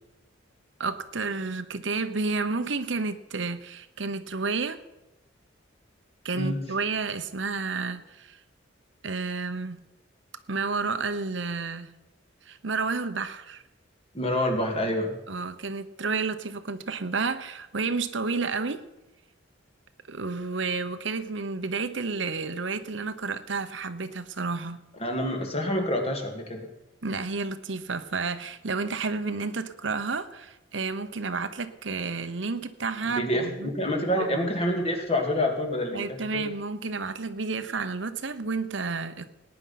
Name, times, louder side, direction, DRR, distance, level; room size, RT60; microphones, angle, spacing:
voice 1, 0.8-4.8 6.2-8.4 9.0-9.8 10.5-11.9 12.4-13.6 15.3-18.8 20.1-24.8 27.0-33.7 34.2-34.4 35.9-39.3, right 4 dB, 70° right, 10 dB, 1.0 m, -31 dB
voice 2, 14.1-15.2 25.0-26.7 33.2-36.5, left 1 dB, 30° left, 3 dB, 2.7 m, -27 dB
18.5 x 9.9 x 5.9 m, 0.98 s
head